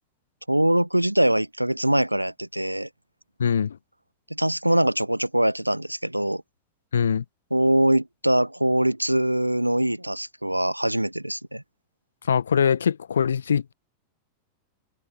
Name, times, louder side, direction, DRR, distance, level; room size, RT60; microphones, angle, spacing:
voice 1, 0.5-2.9 4.3-6.4 7.5-11.6, right 1 dB, 90° right, 0.8 m, -23 dB
voice 2, 3.4-3.8 6.9-7.2 12.2-13.7, left 7 dB, 70° left, 0.7 m, -22 dB
figure-of-eight pair, 90°, 0 cm